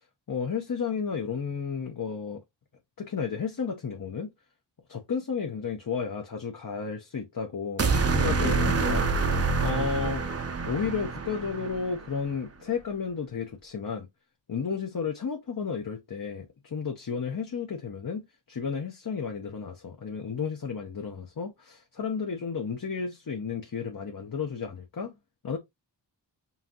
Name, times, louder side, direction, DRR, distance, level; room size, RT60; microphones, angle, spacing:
voice 1, 0.3-2.4 3.0-4.3 4.9-10.3 10.6-14.1 14.5-18.2 18.5-25.2 25.4-25.6, left 6 dB, 50° left, 0.8 m, -32 dB
sound 1, 7.8-12.1, right 4 dB, 35° right, 0.6 m, -27 dB
5.6 x 2.6 x 2.8 m
wide cardioid pair, 75°, 43 cm